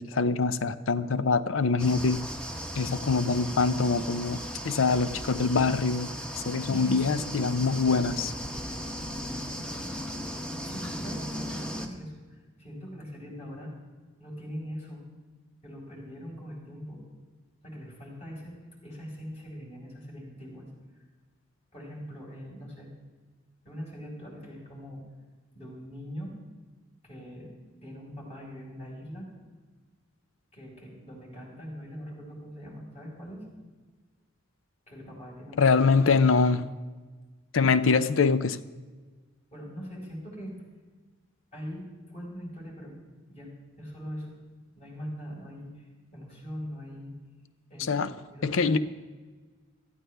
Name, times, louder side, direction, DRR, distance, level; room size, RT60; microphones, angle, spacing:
voice 1, 0.0-2.2 2.8-6.1 6.4-8.3 35.6-36.6 37.5-38.6 47.9-48.1 48.4-48.8, left 4 dB, 85° left, 14 dB, 0.6 m, -24 dB
sound 1, 1.8-11.9, equal, 5° left, 1.0 m, -37 dB
voice 2, 6.7-8.1 8.3-8.6 9.0-10.3 10.6-13.7 14.2-15.1 15.6-17.0 17.6-18.5 18.8-20.7 21.7-22.9 23.6-25.0 25.5-26.4 27.0-27.5 27.8-29.3 30.5-33.4 34.9-36.1 37.6-37.7 39.5-40.5 41.5-43.0 43.3-43.5 43.8-44.3 44.7-47.1 47.7-48.8, equal, 35° left, -3 dB, 5.0 m, -42 dB
18.5 x 14.0 x 3.4 m, 1.4 s
head